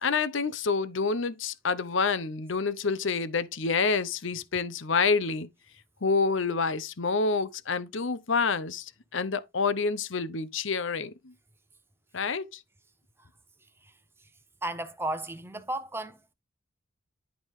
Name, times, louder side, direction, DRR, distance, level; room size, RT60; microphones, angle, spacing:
voice 1, 0.0-5.5 6.0-11.3 12.1-12.6, left 4 dB, 60° left, 0.8 m, -28 dB
voice 2, 14.6-16.2, right 1 dB, 10° right, 0.9 m, -33 dB
11.0 x 4.9 x 3.7 m
head